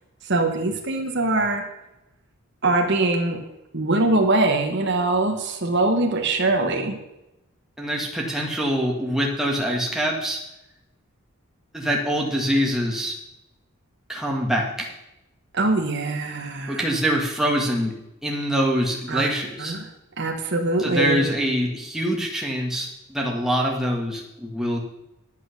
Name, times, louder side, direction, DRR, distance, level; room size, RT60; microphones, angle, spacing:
voice 1, 0.3-1.6 2.6-3.4 3.7-7.0 15.5-16.8 19.1-19.3 19.6-19.9 20.2-21.2, right 2 dB, 50° right, 4 dB, 1.4 m, -22 dB
voice 2, 7.8-10.4 11.7-13.2 14.1-14.9 16.7-17.9 18.2-19.7 20.8-24.8, equal, ahead, -1 dB, 1.7 m, -24 dB
11.0 x 8.6 x 6.6 m, 0.90 s
head